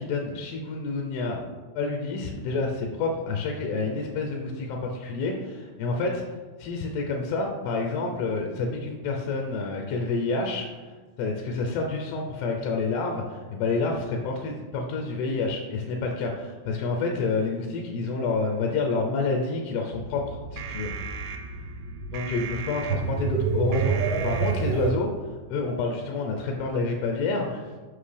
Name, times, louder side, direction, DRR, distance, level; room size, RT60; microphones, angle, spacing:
voice 1, 0.0-1.4 1.8-6.2 6.6-20.9 22.1-27.7, left 3 dB, 85° left, 1 dB, 2.7 m, -28 dB
sound 1, 19.9-24.9, right 6 dB, 85° right, 2.7 m, -29 dB
7.5 x 5.8 x 3.3 m, 1.4 s
omnidirectional pair, 4.6 m